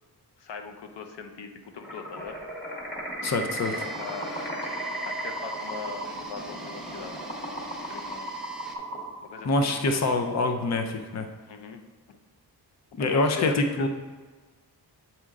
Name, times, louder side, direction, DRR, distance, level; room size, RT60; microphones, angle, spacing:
voice 1, 0.4-2.4 3.7-4.3 5.1-7.6 7.9-8.4 9.2-9.7 11.5-11.8 12.1-12.2 13.0-13.9, left 5 dB, 85° left, 5 dB, 0.7 m, -40 dB
sound 1, 1.8-10.3, right 1 dB, 25° left, 1.8 m, -35 dB
voice 2, 3.2-3.7 9.4-11.3 12.9-13.9, left 2 dB, 40° left, 5 dB, 0.6 m, -25 dB
sound 2, 3.6-8.8, right 1 dB, ahead, 0.7 m, -45 dB
7.7 x 4.3 x 3.6 m, 1.4 s
wide cardioid pair, 135°, 41 cm